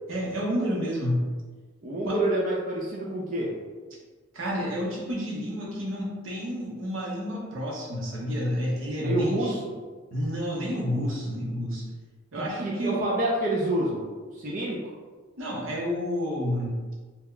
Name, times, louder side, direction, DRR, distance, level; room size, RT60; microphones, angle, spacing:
voice 1, 0.1-1.3 2.0-2.2 4.3-9.6 10.1-11.9 12.3-13.1 15.4-16.7, equal, 85° right, -4 dB, 0.9 m, -30 dB
voice 2, 1.8-3.5 9.0-9.6 12.3-14.1 14.3-14.8, right 1 dB, 40° right, -4 dB, 0.4 m, -27 dB
2.8 x 2.2 x 3.7 m, 1.4 s
head